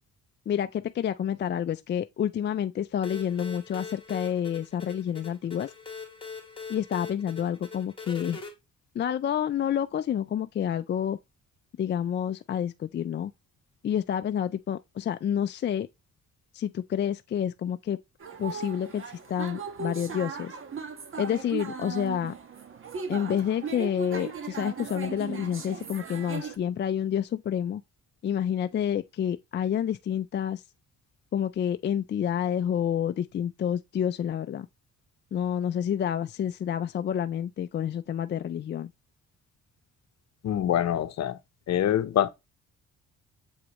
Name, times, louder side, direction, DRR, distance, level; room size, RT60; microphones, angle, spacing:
voice 1, 0.5-5.7 6.7-8.4 8.9-11.2 11.8-13.3 13.8-15.9 16.5-18.0 18.4-20.6 21.2-22.3 23.1-27.8 28.2-30.6 31.3-34.7 35.3-38.9, left 9 dB, 35° left, 0.4 m, -29 dB
sound 1, 3.0-8.5, left 5 dB, 15° left, 2.5 m, -42 dB
sound 2, 18.2-26.6, right 6 dB, 45° right, 1.3 m, -38 dB
voice 2, 40.4-41.4 41.7-42.3, left 11 dB, 60° left, 0.8 m, -25 dB
7.2 x 4.8 x 3.0 m
cardioid pair, 90°, 30 cm